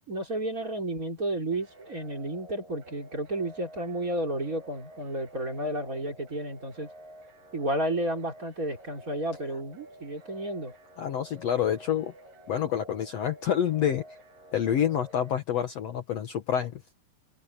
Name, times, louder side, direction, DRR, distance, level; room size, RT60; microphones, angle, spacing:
voice 1, 0.1-6.9 7.5-10.7, right 1 dB, 20° right, 3.6 m, -32 dB
sound 1, 1.5-15.3, right 1 dB, 55° right, 9.9 m, -50 dB
voice 2, 11.0-12.1 12.5-14.0 14.5-16.9, left 9 dB, 85° left, 1.4 m, -28 dB
omnidirectional pair, 4.8 m